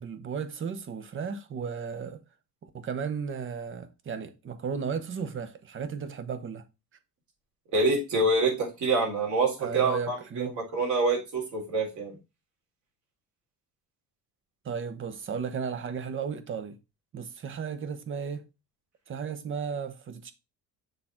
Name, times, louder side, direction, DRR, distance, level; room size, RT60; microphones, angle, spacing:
voice 1, 0.0-2.2 2.6-6.6 9.6-10.5 14.6-16.8 17.1-18.4 19.1-20.3, right 6 dB, 35° right, 0.9 m, -34 dB
voice 2, 7.7-12.2, right 3 dB, 55° right, 3.4 m, -26 dB
6.7 x 3.8 x 4.3 m
cardioid pair, 130°, 34 cm